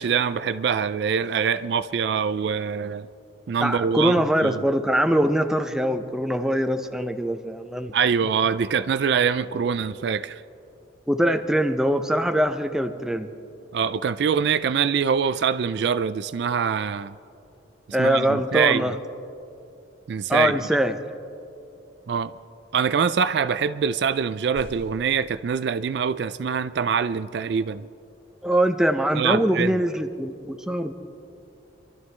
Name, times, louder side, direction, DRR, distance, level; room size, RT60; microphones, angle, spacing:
voice 1, 0.0-3.1 3.5-4.1 4.4-4.6 7.9-10.4 13.7-17.1 18.0-18.9 20.1-20.6 22.1-22.3 22.7-27.9 29.2-29.8, right 6 dB, 60° right, 13 dB, 0.3 m, -24 dB
voice 2, 3.6-7.9 11.1-13.3 17.9-19.0 20.3-20.9 28.4-30.9, equal, 5° right, 7 dB, 0.5 m, -23 dB
sound 1, 24.1-25.8 26.7-26.8, equal, 60° left, 3.5 m, -46 dB
26.5 x 12.5 x 3.3 m, 2.7 s
head